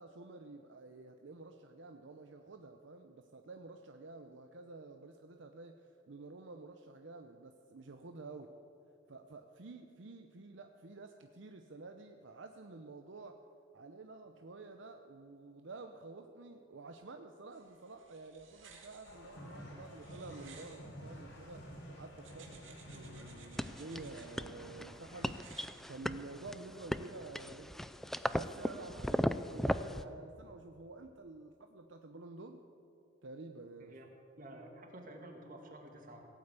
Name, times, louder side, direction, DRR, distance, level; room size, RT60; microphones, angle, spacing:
voice 1, 0.0-8.5 9.1-13.4 13.7-25.4 25.9-27.9 28.3-32.6 33.2-34.0, right 3 dB, 70° right, 5 dB, 0.7 m, -50 dB
sound 1, 17.5-21.7 22.2-24.3 25.1-26.5, right 5 dB, 85° right, 2.2 m, -59 dB
sound 2, 19.0-25.8, equal, 80° left, 3.5 m, -51 dB
sound 3, 23.6-30.0, equal, ahead, 0.3 m, -37 dB
voice 2, 34.4-36.2, right 1 dB, 45° right, 2 dB, 2.0 m, -51 dB
17.0 x 8.7 x 8.2 m, 2.7 s
head